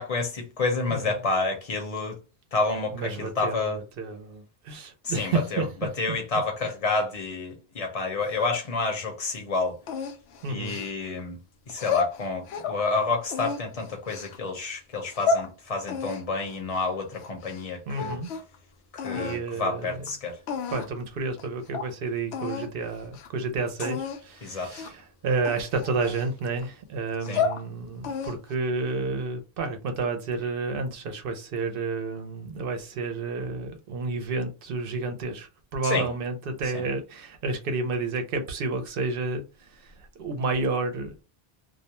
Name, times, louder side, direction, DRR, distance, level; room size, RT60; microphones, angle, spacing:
voice 1, 0.0-2.2 2.5-3.8 5.1-5.6 6.0-9.8 10.5-11.4 11.7-18.2 19.0-20.4 24.4-24.7 27.3-27.4 35.8-36.0 36.7-36.8, left 3 dB, 40° left, 0.8 m, -29 dB
voice 2, 0.9-1.2 2.9-5.9 8.2-8.4 10.4-10.8 17.9-18.3 19.1-20.0 20.7-41.2, right 3 dB, 65° right, 0.7 m, -30 dB
sound 1, 9.9-11.2 11.7-12.8 13.3-14.4 14.9-15.5 15.9-17.6 17.9-18.5 19.0-19.4 20.1-20.2 20.5-21.0 21.4-21.5 21.7-21.9 22.3-22.7 23.0-23.3 23.8-24.2 24.7-25.0 25.4-26.6 27.1-27.6 28.0-28.5, left 5 dB, 85° left, 0.8 m, -31 dB
2.4 x 2.1 x 2.8 m
omnidirectional pair, 1.1 m